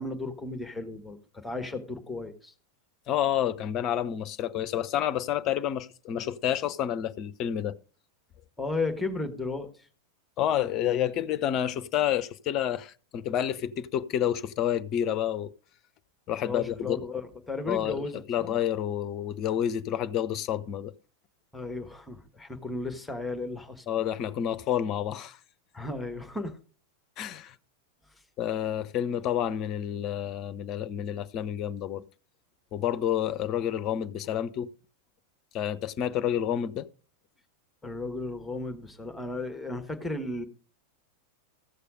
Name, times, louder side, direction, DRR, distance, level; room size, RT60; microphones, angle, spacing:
voice 1, 0.0-2.5 8.6-9.9 16.4-18.5 21.5-23.8 25.7-26.6 37.8-40.4, left 2 dB, 5° left, 1.4 m, -34 dB
voice 2, 3.1-7.8 10.4-15.5 16.3-17.1 17.7-18.0 18.3-20.9 23.9-25.4 27.2-27.5 28.4-32.0 32.7-34.7 35.5-36.9, left 10 dB, 35° left, 0.6 m, -29 dB
15.0 x 6.7 x 5.1 m
figure-of-eight pair, 90°, 0 cm